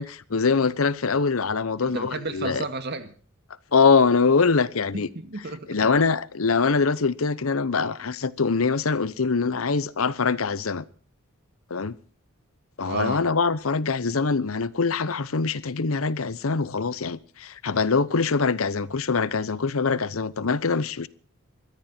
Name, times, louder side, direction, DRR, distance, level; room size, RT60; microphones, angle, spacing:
voice 1, 0.0-2.6 3.7-5.1 5.7-10.8 11.7-12.0 12.8-21.1, left 4 dB, 80° left, 0.8 m, -23 dB
voice 2, 1.8-3.1 4.9-5.9 12.8-13.2, right 3 dB, 55° right, 2.2 m, -32 dB
22.0 x 14.5 x 4.4 m
head